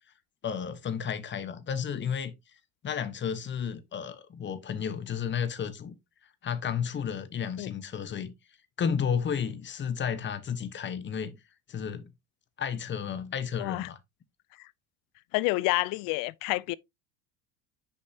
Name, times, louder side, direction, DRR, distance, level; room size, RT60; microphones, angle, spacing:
voice 1, 0.4-2.3 2.8-5.9 6.4-8.3 8.8-11.4 11.7-12.1 12.6-14.0, left 7 dB, 30° left, 1.1 m, -32 dB
voice 2, 13.6-13.9 15.3-16.7, left 21 dB, 60° left, 0.5 m, -28 dB
6.8 x 5.2 x 2.7 m
supercardioid pair, 105°, 37 cm